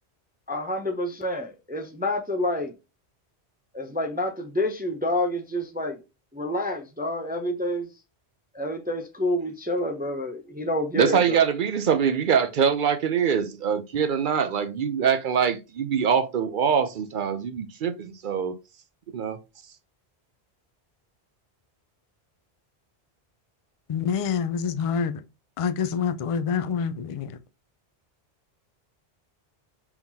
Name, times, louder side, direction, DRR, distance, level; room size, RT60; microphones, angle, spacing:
voice 1, 0.5-2.7 3.7-6.0 6.3-7.9 8.5-11.4, left 1 dB, 15° right, 0.4 m, -28 dB
voice 2, 11.0-18.5 19.1-19.4, right 7 dB, 55° right, 0.7 m, -23 dB
voice 3, 23.9-25.2 25.6-27.4, left 6 dB, 60° left, 0.3 m, -27 dB
4.6 x 3.7 x 2.7 m
omnidirectional pair, 1.1 m